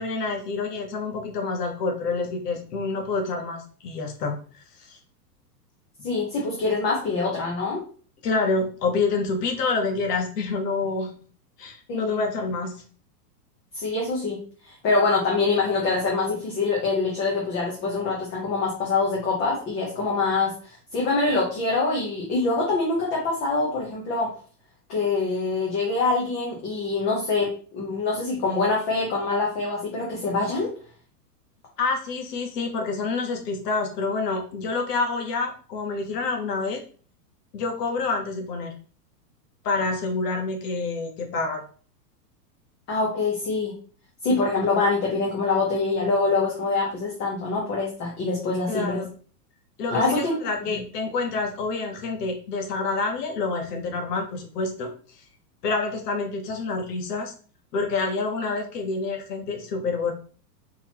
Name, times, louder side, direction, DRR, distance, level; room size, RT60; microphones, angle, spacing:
voice 1, 0.0-4.3 4.9-5.0 8.2-11.1 11.6-12.7 31.8-36.8 37.5-38.7 39.6-41.6 48.7-49.1 49.8-54.9 55.6-57.3 57.7-60.1, left 3 dB, 70° left, 4 dB, 1.5 m, -27 dB
voice 2, 6.0-7.8 11.9-12.2 13.7-14.4 14.6-20.5 20.9-24.3 24.9-30.7 42.9-43.7 44.2-49.0 49.9-50.3 50.7-50.8, left 3 dB, 25° left, -3 dB, 1.0 m, -25 dB
4.5 x 3.9 x 2.9 m, 0.41 s
supercardioid pair, 160°, 49 cm